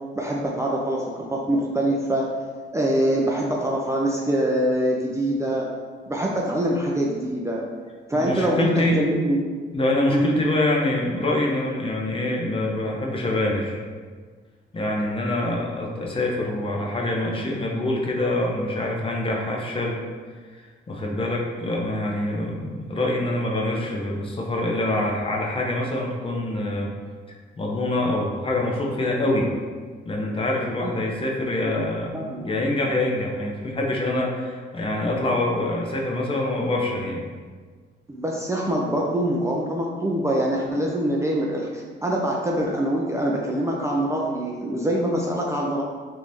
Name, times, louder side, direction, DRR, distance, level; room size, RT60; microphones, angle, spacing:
voice 1, 0.1-1.0 1.3-2.2 2.7-5.7 6.1-7.6 8.1-9.4 10.1-10.4 30.8-30.9 31.6-31.9 32.1-32.5 38.1-45.8, right 1 dB, 15° right, -2 dB, 0.4 m, -24 dB
voice 2, 8.1-9.0 9.7-13.8 14.7-20.0 20.5-26.9 27.3-29.5 30.0-32.2 32.4-37.3, left 1 dB, 25° left, -1 dB, 0.6 m, -25 dB
3.5 x 2.6 x 3.0 m, 1.5 s
cardioid pair, 90°, 20 cm